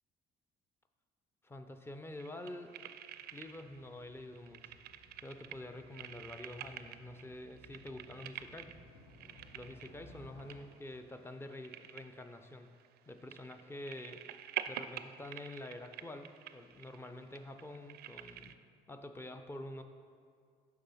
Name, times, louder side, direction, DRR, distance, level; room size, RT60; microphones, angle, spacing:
voice 1, 1.4-2.7 3.3-4.8 5.2-8.7 9.5-12.7 13.1-14.2 14.7-18.6 18.9-19.8, left 1 dB, 15° left, 7 dB, 0.6 m, -47 dB
sound 1, 2.1-18.5, right 11 dB, 70° right, 0.4 m, -48 dB
Motorcycle, 3.0-10.6, left 1 dB, 75° left, 1.2 m, -60 dB
7.1 x 5.6 x 5.6 m, 2.1 s
cardioid pair, 110°, 17 cm